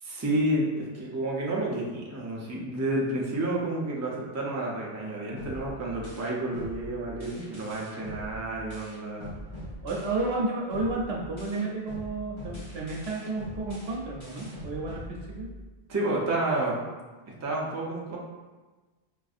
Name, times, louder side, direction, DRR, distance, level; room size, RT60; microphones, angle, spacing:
voice 1, 0.0-9.3 15.9-16.8 17.4-18.2, right 1 dB, 20° right, -4 dB, 0.4 m, -30 dB
sound 1, 5.4-10.4 10.7-15.7, equal, 30° left, 0.8 m, -43 dB
voice 2, 9.8-15.5, right 2 dB, 80° right, -2 dB, 0.8 m, -32 dB
4.7 x 2.6 x 2.4 m, 1.3 s
omnidirectional pair, 1.0 m